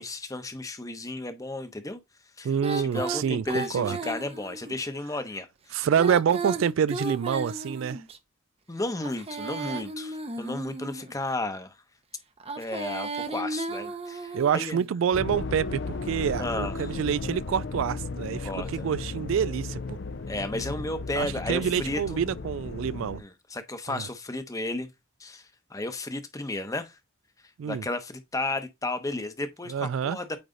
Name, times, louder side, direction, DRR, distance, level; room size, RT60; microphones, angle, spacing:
voice 1, 0.0-2.0 2.4-5.8 8.7-11.8 12.6-14.8 16.4-16.9 18.4-18.9 20.3-22.2 23.2-24.9 25.2-27.0 27.7-30.4, left 2 dB, 15° left, 0.9 m, -33 dB
voice 2, 2.4-4.0 5.7-8.0 14.3-20.0 21.2-23.2 23.9-24.0 27.6-27.8 29.7-30.2, right 8 dB, 70° right, 0.3 m, -27 dB
Female singing, 2.6-4.7 5.9-8.2 9.0-11.1 12.4-14.6, right 2 dB, 30° right, 0.8 m, -35 dB
sound 1, 15.1-23.2, left 3 dB, 55° left, 0.6 m, -35 dB
8.8 x 3.2 x 3.9 m
head